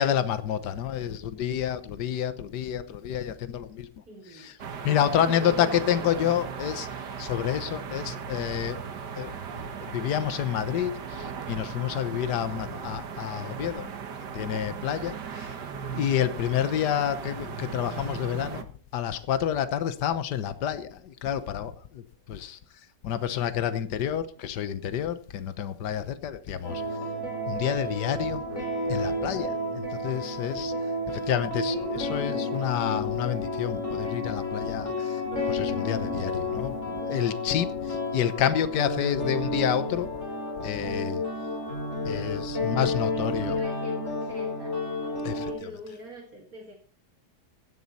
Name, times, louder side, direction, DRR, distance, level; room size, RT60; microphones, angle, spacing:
voice 1, 0.0-3.9 4.3-4.6 4.8-8.8 9.2-13.9 14.3-15.5 15.9-18.7 18.9-22.6 23.0-26.8 27.5-28.4 28.9-30.7 31.1-35.2 35.5-40.1 40.6-41.2 42.0-43.6 45.2-45.5, left 10 dB, 80° left, 1.6 m, -29 dB
voice 2, 3.7-4.5 5.1-6.1 42.5-42.7 43.1-44.8 45.1-46.8, right 1 dB, 55° right, 2.7 m, -44 dB
sound 1, 4.6-18.6, right 6 dB, 80° right, 2.0 m, -37 dB
sound 2, 26.6-45.5, left 2 dB, 50° left, 5.5 m, -31 dB
16.5 x 10.5 x 4.2 m
omnidirectional pair, 1.8 m